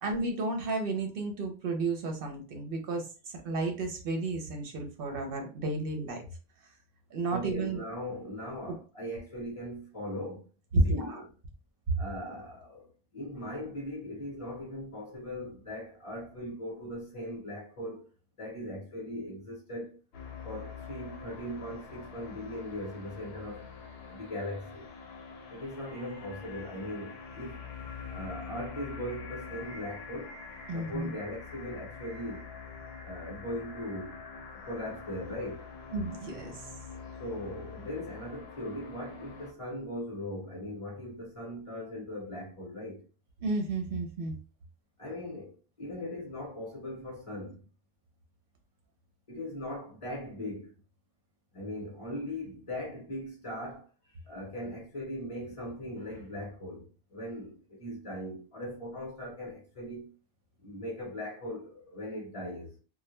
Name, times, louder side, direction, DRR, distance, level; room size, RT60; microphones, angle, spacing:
voice 1, 0.0-6.2 7.1-7.8 8.7-8.8 10.7-11.2 30.7-31.1 35.9-36.6 43.4-44.3, right 2 dB, 65° right, 0.8 m, -32 dB
voice 2, 7.3-10.5 10.8-11.2 12.0-12.9 13.1-18.0 18.4-20.0 20.4-23.6 24.1-24.9 25.5-27.6 28.1-30.3 30.7-32.5 33.0-34.2 34.5-35.6 37.2-43.0 45.0-47.6 49.3-50.7 51.5-53.9 54.3-60.1 60.6-62.7, left 1 dB, 35° left, 0.8 m, -39 dB
sound 1, 20.1-39.5, left 5 dB, 75° left, 0.8 m, -45 dB
2.1 x 2.1 x 2.9 m
omnidirectional pair, 1.0 m